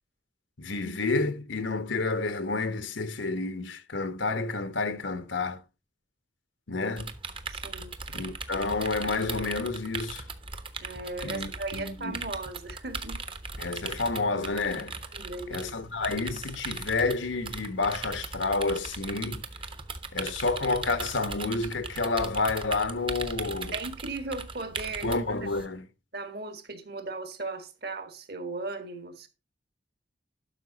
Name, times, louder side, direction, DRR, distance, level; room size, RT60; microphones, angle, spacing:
voice 1, 0.6-5.6 6.7-7.1 8.1-10.2 11.2-12.2 13.6-15.0 15.5-19.4 20.1-23.8 25.0-25.9, left 3 dB, 75° left, 1.1 m, -30 dB
sound 1, 7.0-25.7, right 4 dB, 30° right, 1.0 m, -39 dB
voice 2, 7.5-7.9 10.8-13.2 15.1-15.7 23.7-25.2 25.6-25.7 26.1-29.3, right 3 dB, 55° right, 1.7 m, -37 dB
12.0 x 5.8 x 4.0 m
head